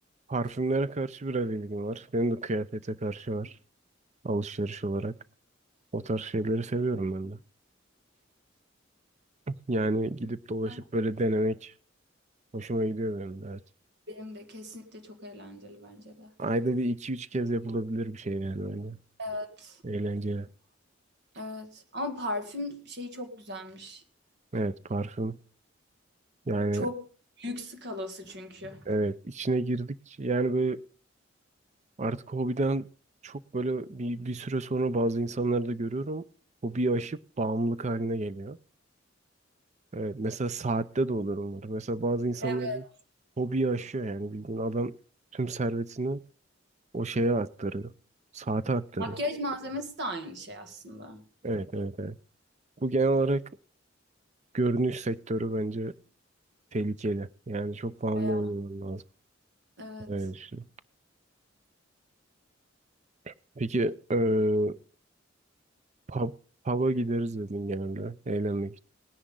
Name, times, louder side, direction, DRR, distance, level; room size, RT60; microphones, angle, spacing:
voice 1, 0.3-3.5 4.2-5.1 5.9-7.4 9.7-11.7 12.5-13.6 16.4-19.0 19.8-20.5 24.5-25.4 26.5-26.9 28.9-30.8 32.0-32.9 33.2-36.2 36.6-38.6 39.9-42.8 43.4-44.9 45.3-46.2 46.9-47.9 48.3-49.1 51.4-52.2 52.8-53.4 54.5-55.9 56.7-59.0 60.1-60.7 63.3-64.8 66.1-66.3 66.6-68.8, right 2 dB, 35° right, 0.6 m, -29 dB
voice 2, 14.1-16.3 19.2-19.8 21.4-24.0 26.7-27.0 27.4-29.0 42.4-42.9 49.0-51.2 58.2-58.6 59.8-60.1, left 1 dB, 60° right, 1.9 m, -37 dB
18.5 x 10.0 x 3.8 m
head